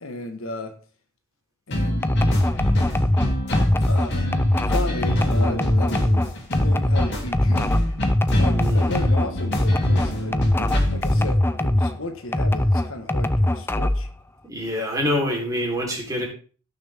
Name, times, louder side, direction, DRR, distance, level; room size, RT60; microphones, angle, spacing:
voice 1, 0.0-0.7 1.7-2.1 3.9-4.3 4.7-7.9 8.4-10.3 10.9-14.1, left 2 dB, 70° left, 6 dB, 1.6 m, -34 dB
Funky Loop, 1.7-11.3, left 1 dB, 50° left, 3.1 m, -26 dB
sound 1, 2.0-12.0 12.3-14.1, left 1 dB, 10° left, 0.5 m, -21 dB
voice 2, 8.5-9.0 14.5-16.3, left 1 dB, 15° right, -2 dB, 3.9 m, -26 dB
17.5 x 6.6 x 3.6 m, 0.39 s
head